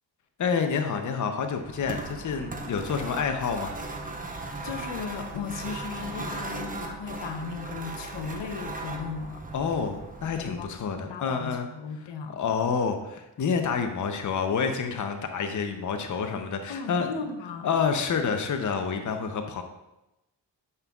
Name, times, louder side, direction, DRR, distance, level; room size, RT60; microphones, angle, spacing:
voice 1, 0.4-3.7 9.5-11.7 12.3-17.1 17.6-19.6, left 6 dB, 45° left, 6 dB, 0.7 m, -28 dB
sound 1, 1.5-10.9, right 2 dB, 20° right, 0.8 m, -38 dB
voice 2, 4.6-9.4 10.4-12.4 16.7-17.7, left 5 dB, 75° left, 7 dB, 0.8 m, -36 dB
8.1 x 5.3 x 2.4 m, 0.94 s
cardioid pair, 70°, 44 cm